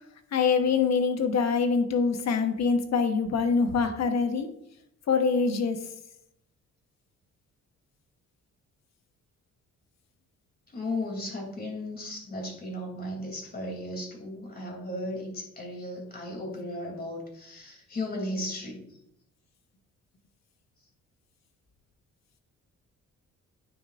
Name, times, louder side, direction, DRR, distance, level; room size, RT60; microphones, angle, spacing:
voice 1, 0.3-4.5 5.1-5.8, left 5 dB, 60° left, 6 dB, 1.1 m, -24 dB
voice 2, 10.7-18.9, left 1 dB, 30° left, 1 dB, 2.9 m, -35 dB
9.4 x 5.9 x 2.5 m, 0.77 s
cardioid pair, 90°, 30 cm